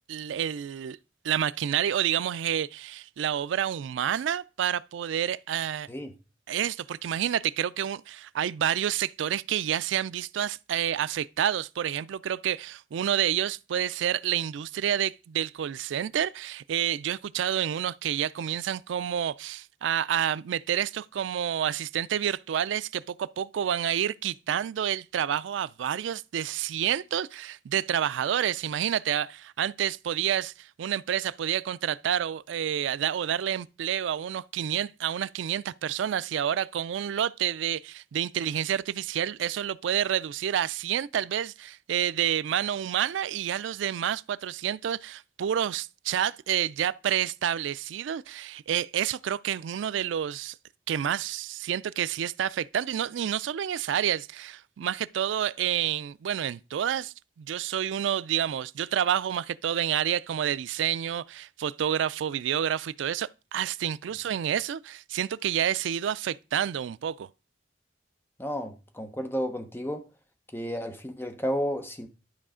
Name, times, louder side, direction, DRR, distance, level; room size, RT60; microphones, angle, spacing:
voice 1, 0.1-1.0 1.2-5.9 6.5-50.5 50.9-67.3, right 9 dB, 75° right, 0.3 m, -29 dB
voice 2, 68.4-70.1 70.5-72.1, equal, 10° left, 1.0 m, -32 dB
12.0 x 4.9 x 3.7 m
head